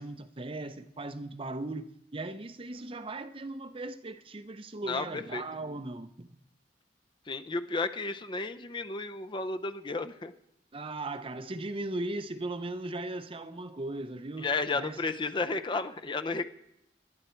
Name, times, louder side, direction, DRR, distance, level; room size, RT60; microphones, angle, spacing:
voice 1, 0.0-6.4 10.7-14.5 14.7-15.0, right 2 dB, 30° right, 0.7 m, -38 dB
voice 2, 4.8-5.4 7.3-10.3 14.4-16.5, left 3 dB, 25° left, 0.6 m, -33 dB
21.0 x 11.0 x 4.5 m
head